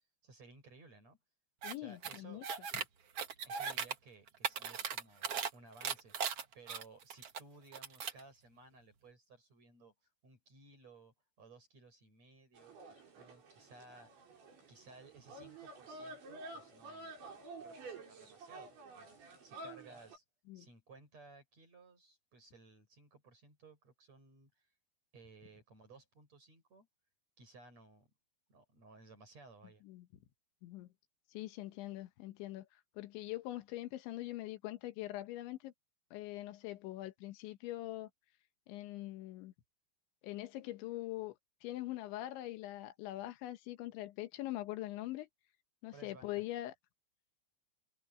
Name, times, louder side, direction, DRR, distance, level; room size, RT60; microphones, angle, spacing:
voice 1, 0.2-1.2 1.8-2.4 3.4-14.1 14.7-17.2 17.6-20.2 20.5-24.7 25.1-26.9 27.4-28.1 28.5-29.8 45.9-46.3, right 3 dB, 35° right, 8.1 m, -59 dB
voice 2, 1.6-2.5 20.5-20.7 29.8-30.1 30.6-30.9 31.3-35.7 36.1-38.1 38.7-39.5 40.2-45.3 45.8-46.7, left 16 dB, 75° left, 3.5 m, -43 dB
sound 1, 1.6-1.7 2.0-2.8 3.2-3.9 4.3-5.5 5.8-7.4 7.7-8.2, right 7 dB, 85° right, 1.3 m, -38 dB
sound 2, 12.6-20.2, right 2 dB, 70° right, 9.0 m, -51 dB
omnidirectional pair, 5.5 m